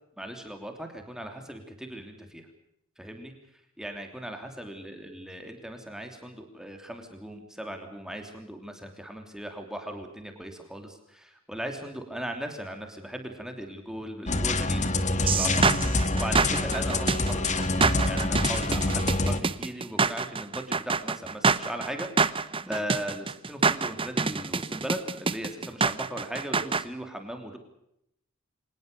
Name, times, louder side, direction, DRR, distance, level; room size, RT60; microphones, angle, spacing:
voice 1, 0.2-2.5 3.0-3.3 3.8-27.6, right 1 dB, 5° right, 4 dB, 3.1 m, -38 dB
sound 1, 14.3-19.4, left 2 dB, 35° left, 1.7 m, -26 dB
sound 2, 15.3-26.8, right 4 dB, 25° right, 0.8 m, -26 dB
25.5 x 20.0 x 6.7 m, 0.77 s
head